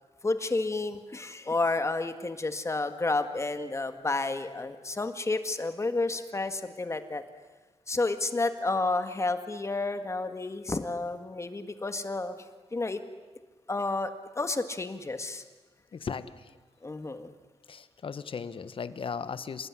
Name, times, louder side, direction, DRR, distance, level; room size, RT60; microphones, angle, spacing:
voice 1, 0.2-7.2 7.9-12.4 12.7-13.0 13.7-15.4 16.8-17.3, left 3 dB, 25° left, 8 dB, 1.8 m, -30 dB
voice 2, 15.9-16.6 17.7-19.7, left 6 dB, 55° left, 13 dB, 1.3 m, -37 dB
28.5 x 19.5 x 9.9 m, 1.3 s
wide cardioid pair, 110°, 11 cm